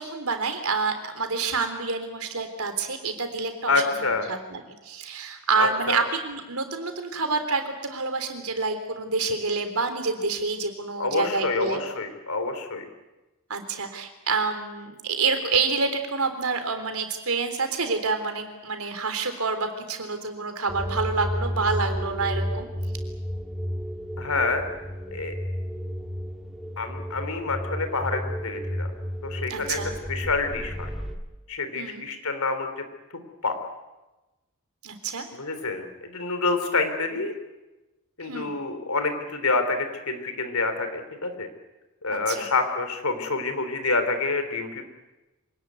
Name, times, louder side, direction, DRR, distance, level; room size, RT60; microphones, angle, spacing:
voice 1, 0.0-11.8 13.5-22.7 29.5-29.9 31.8-32.0 34.8-35.3 38.2-38.5 42.1-42.5, right 4 dB, 75° right, 7 dB, 3.7 m, -28 dB
voice 2, 3.7-4.3 5.6-6.0 11.0-12.8 24.2-24.6 25.1-25.3 26.8-28.9 29.2-29.8 30.1-30.9 31.5-32.7 33.4-33.6 35.3-37.3 38.2-41.5 42.0-44.8, left 3 dB, 75° left, 8 dB, 3.6 m, -27 dB
sound 1, 20.7-31.2, equal, ahead, 2.2 m, -32 dB
26.5 x 18.5 x 9.5 m, 1.1 s
head